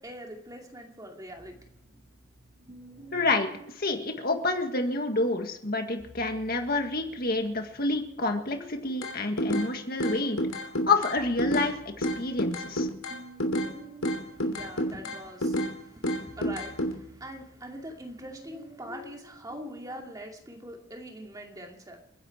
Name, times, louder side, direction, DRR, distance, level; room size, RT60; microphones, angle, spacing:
voice 1, 0.0-1.6 14.2-22.0, right 1 dB, 15° right, 1 dB, 2.4 m, -43 dB
sound 1, 1.3-4.8 5.8-10.2 10.7-19.9, right 1 dB, 35° right, 6.4 m, -52 dB
voice 2, 3.1-3.5 3.8-10.4 10.9-12.9, left 3 dB, 45° left, 4 dB, 1.8 m, -28 dB
sound 2, 9.0-9.7 10.0-11.7 12.0-13.7 14.0-15.7 16.0-16.9, equal, 75° left, 3.1 m, -29 dB
30.0 x 11.0 x 4.5 m, 0.73 s
head